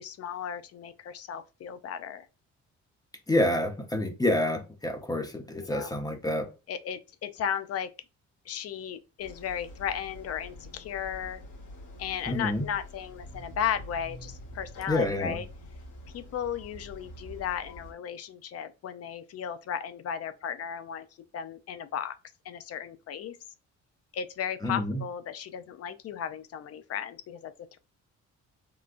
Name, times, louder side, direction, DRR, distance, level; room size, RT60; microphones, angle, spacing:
voice 1, 0.0-2.3 5.5-5.9 6.7-7.9 8.5-11.4 12.0-15.4 16.1-21.1 21.3-22.2 22.4-23.4 24.1-27.8, left 8 dB, 55° left, 0.5 m, -35 dB
voice 2, 3.3-6.5 12.3-12.7 14.9-15.4 24.6-25.0, left 1 dB, 15° left, 0.7 m, -28 dB
sound 1, 9.2-17.9, left 1 dB, 80° left, 1.3 m, -46 dB
3.7 x 2.2 x 2.5 m
cardioid pair, 90°, 30 cm